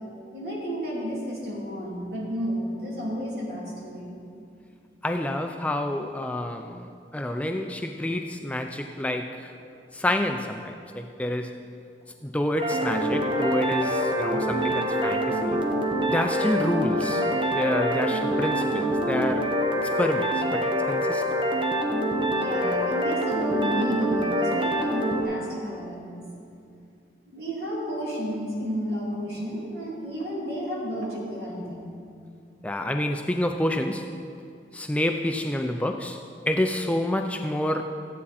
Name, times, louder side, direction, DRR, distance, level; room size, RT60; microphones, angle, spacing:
voice 1, 0.0-4.2 21.8-26.2 27.3-31.9, equal, 65° right, -5 dB, 2.8 m, -32 dB
voice 2, 5.0-9.5 9.9-11.5 12.2-15.6 16.1-17.2 17.5-19.5 20.0-21.2 32.6-34.1 34.7-37.8, left 1 dB, 10° left, 5 dB, 0.3 m, -28 dB
sound 1, 12.6-25.2, equal, 30° right, 1.0 m, -25 dB
14.0 x 8.5 x 4.2 m, 2.4 s
head